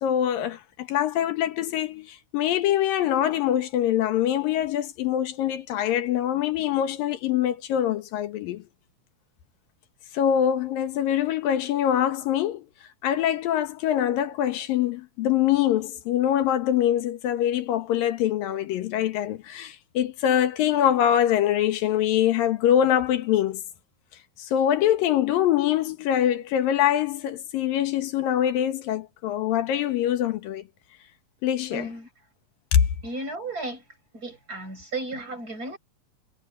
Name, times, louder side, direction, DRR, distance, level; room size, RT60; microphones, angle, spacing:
voice 1, 0.0-8.6 10.1-12.7 13.0-23.6 24.4-30.6 31.4-31.9 32.7-32.9, left 10 dB, 85° left, 3.2 m, -24 dB
voice 2, 31.7-32.1 33.0-33.8 34.1-35.8, right 2 dB, 25° right, 6.0 m, -34 dB
omnidirectional pair, 3.9 m